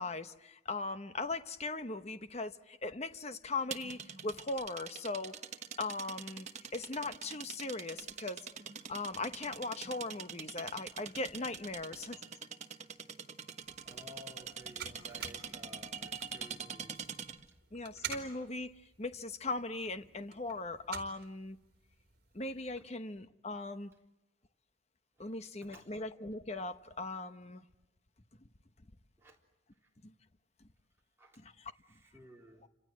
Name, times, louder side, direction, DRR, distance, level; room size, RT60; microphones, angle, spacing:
voice 1, 0.0-5.3 5.8-6.5 6.7-8.4 8.9-12.2 17.7-21.6 22.3-23.9 25.2-27.6 30.0-30.1 31.4-31.5, left 3 dB, 35° left, 1.0 m, -39 dB
sound 1, 3.7-17.5, right 6 dB, 35° right, 1.2 m, -45 dB
sound 2, 13.6-22.8, right 8 dB, 50° right, 3.8 m, -49 dB
voice 2, 13.8-17.3 22.8-22.9 25.2-25.9 29.2-29.4 31.2-31.4 31.7-32.7, equal, 10° right, 3.6 m, -56 dB
29.5 x 26.5 x 7.6 m
head